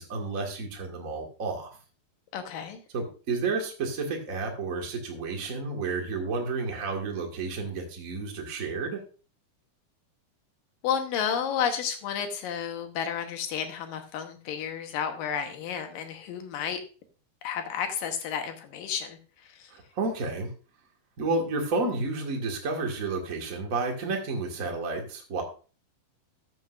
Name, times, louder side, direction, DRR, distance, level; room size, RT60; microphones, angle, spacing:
voice 1, 0.0-1.7 2.9-9.0 19.7-20.5 21.2-25.4, right 3 dB, 35° right, 1 dB, 1.3 m, -31 dB
voice 2, 2.3-2.8 10.8-16.8 17.4-19.2, left 8 dB, 70° left, 6 dB, 2.6 m, -31 dB
13.5 x 7.7 x 2.5 m, 0.36 s
omnidirectional pair, 4.5 m